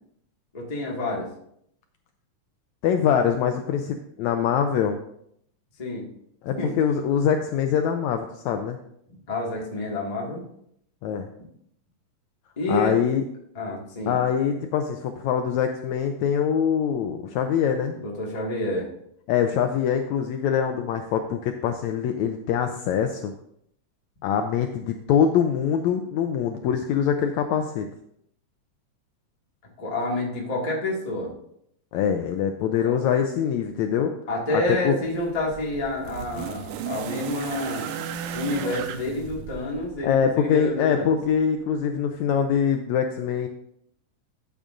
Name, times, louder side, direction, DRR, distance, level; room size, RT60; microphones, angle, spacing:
voice 1, 0.5-1.3 5.8-6.0 6.6-6.7 9.3-10.4 12.6-13.0 13.5-14.1 18.0-18.9 29.8-31.3 32.8-32.9 34.3-37.9 38.3-41.1, left 2 dB, 20° left, -3 dB, 1.1 m, -28 dB
voice 2, 2.8-5.0 6.4-8.8 11.0-11.3 12.7-13.2 14.1-18.0 19.3-23.3 24.2-27.9 31.9-34.1 34.5-35.0 40.0-43.5, left 8 dB, 80° left, 6 dB, 1.7 m, -24 dB
sound 1, 35.0-40.3 41.3-41.4, right 8 dB, 85° right, 2.2 m, -35 dB
12.5 x 8.4 x 2.5 m, 0.72 s
omnidirectional pair, 3.7 m